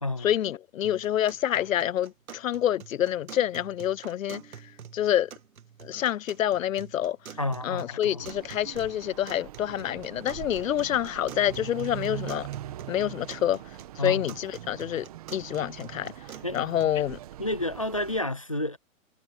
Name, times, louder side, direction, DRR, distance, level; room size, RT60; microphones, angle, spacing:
voice 1, 0.2-4.4 4.9-5.3 5.8-7.2 7.6-12.5 12.9-13.6 14.0-15.1 15.3-16.1 16.5-17.2, left 11 dB, 75° left, 0.7 m, -27 dB
sound 1, 0.8-16.8, right 8 dB, 85° right, 2.4 m, -47 dB
voice 2, 7.4-8.2 14.0-14.3 16.4-16.6 17.4-18.8, left 1 dB, 25° left, 0.4 m, -30 dB
sound 2, 8.2-18.2, right 14 dB, 25° right, 1.2 m, -42 dB
hypercardioid pair, 170°, 41 cm